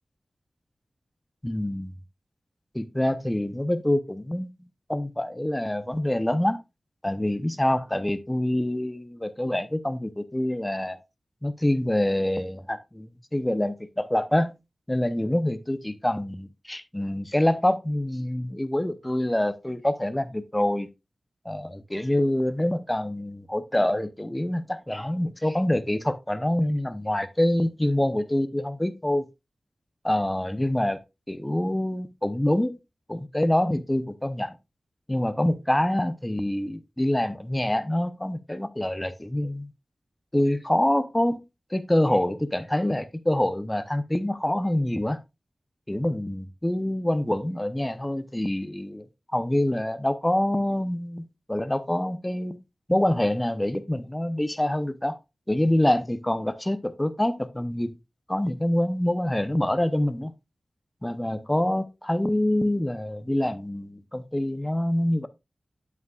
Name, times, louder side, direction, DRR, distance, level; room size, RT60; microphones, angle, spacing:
voice 1, 1.4-2.0 2.7-6.6 7.0-11.0 11.4-14.5 14.9-20.9 21.4-29.3 30.0-31.0 31.3-32.8 33.1-34.6 35.1-39.7 40.3-41.4 41.7-45.2 45.9-49.0 49.3-52.6 52.9-55.2 55.5-58.0 58.3-60.3 61.0-65.3, left 1 dB, 15° left, 0.7 m, -26 dB
8.3 x 7.6 x 2.4 m
wide cardioid pair, 75°, 0 cm